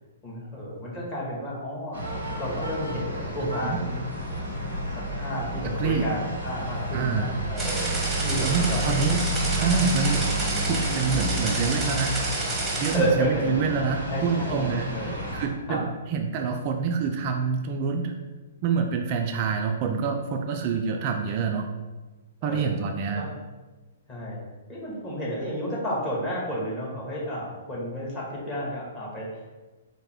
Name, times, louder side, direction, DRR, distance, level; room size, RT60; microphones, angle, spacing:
voice 1, 0.2-3.9 4.7-9.3 9.6-9.8 12.9-13.6 14.0-15.1 15.7-15.8 22.4-22.8 23.1-23.3 24.1-24.4 24.7-29.4, equal, 25° left, -6 dB, 1.4 m, -32 dB
sound 1, 1.9-15.5, right 1 dB, 80° left, 1.2 m, -30 dB
voice 2, 3.4-3.8 5.6-6.1 6.9-7.3 8.5-9.2 9.5-10.3 10.7-12.2 12.8-18.2 18.6-21.7 22.4-23.3, right 5 dB, 40° right, 3 dB, 0.3 m, -27 dB
sound 2, 7.6-13.0, right 2 dB, 10° right, 0.8 m, -30 dB
4.2 x 2.1 x 3.4 m, 1.2 s
hypercardioid pair, 120°, 0 cm